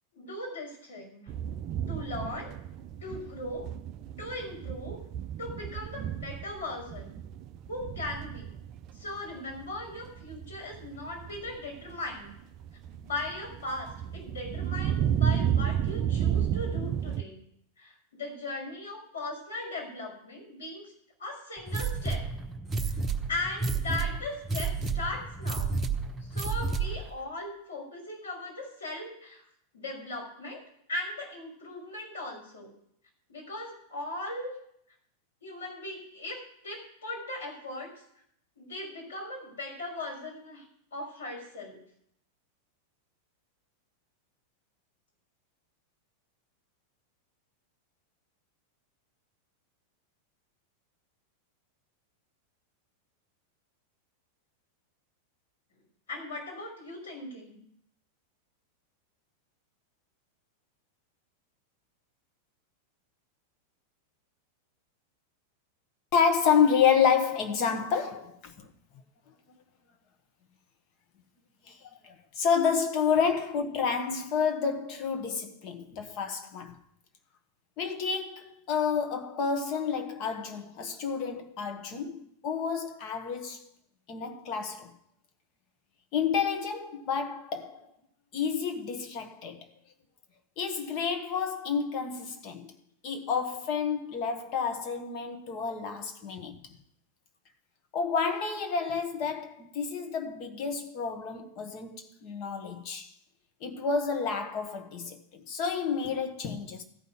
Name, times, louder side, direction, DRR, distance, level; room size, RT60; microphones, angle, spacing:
voice 1, 0.1-1.3 1.9-2.5 3.0-3.7 4.2-5.0 5.4-7.1 7.7-8.5 8.9-12.3 13.0-17.4 17.8-20.9 21.2-22.3 22.8-23.0 23.3-25.8 26.3-29.4 29.7-30.6 30.9-32.7 33.3-34.6 35.4-37.9 38.6-40.6 40.9-41.8 56.1-57.6, left 2 dB, 70° left, 4.5 m, -38 dB
sound 1, 1.3-17.2, right 9 dB, 35° right, 0.5 m, -32 dB
sound 2, 21.7-27.1, right 4 dB, 15° right, 1.0 m, -31 dB
voice 2, 66.1-68.7 71.7-71.8 72.0-76.8 77.8-83.7 84.1-84.9 86.1-87.9 88.3-89.6 90.6-92.7 93.0-96.6 97.9-103.1 103.6-106.8, left 6 dB, 40° left, 1.4 m, -29 dB
14.0 x 5.5 x 9.1 m
figure-of-eight pair, 90°, 0 cm